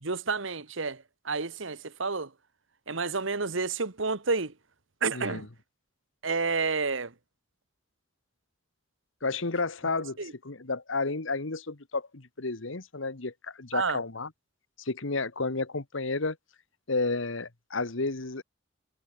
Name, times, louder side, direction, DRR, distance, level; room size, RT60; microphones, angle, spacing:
voice 1, 0.0-2.3 2.9-4.5 5.0-5.5 6.2-7.1 10.2-10.3 13.7-14.0, right 4 dB, 70° right, 1.5 m, -30 dB
voice 2, 5.1-5.5 9.2-10.2 10.4-14.3 14.8-16.4 16.9-18.4, left 3 dB, 70° left, 1.5 m, -31 dB
head